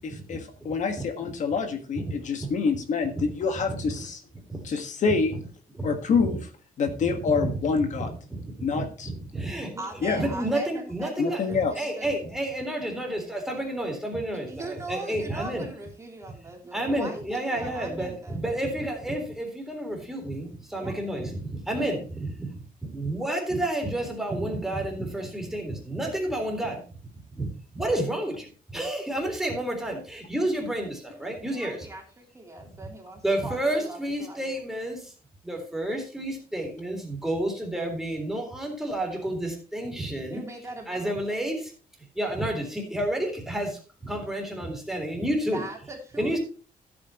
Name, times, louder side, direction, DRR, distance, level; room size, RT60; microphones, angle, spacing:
voice 1, 0.0-4.2 4.6-5.3 5.8-6.4 6.8-8.1 8.6-9.1 10.0-10.2 11.2-11.9, left 5 dB, 55° left, 6 dB, 1.6 m, -26 dB
voice 2, 3.0-3.9 4.5-4.6 5.0-5.5 5.7-6.4 7.0-15.7 16.7-26.8 27.4-27.5 27.7-31.9 33.2-35.1 35.4-40.4 40.9-41.7 42.2-46.4, right 1 dB, 5° right, 1 dB, 3.6 m, -31 dB
voice 3, 9.8-12.2 14.5-18.4 20.7-20.9 31.1-34.5 40.3-41.2 45.5-46.4, right 2 dB, 20° right, 0 dB, 3.2 m, -40 dB
14.5 x 8.7 x 3.0 m, 0.37 s
wide cardioid pair, 165°, 15 cm